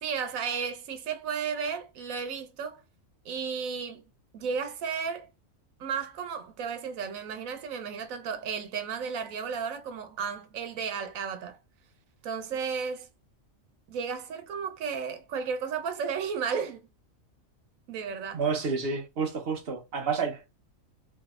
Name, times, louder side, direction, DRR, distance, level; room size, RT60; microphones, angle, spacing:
voice 1, 0.0-2.8 3.2-4.0 4.3-5.3 5.8-11.6 12.2-13.1 13.9-16.8 17.9-18.4, right 6 dB, 85° right, 1.1 m, -33 dB
voice 2, 18.3-20.5, right 5 dB, 50° right, 1.0 m, -29 dB
3.2 x 2.7 x 2.3 m
omnidirectional pair, 1.4 m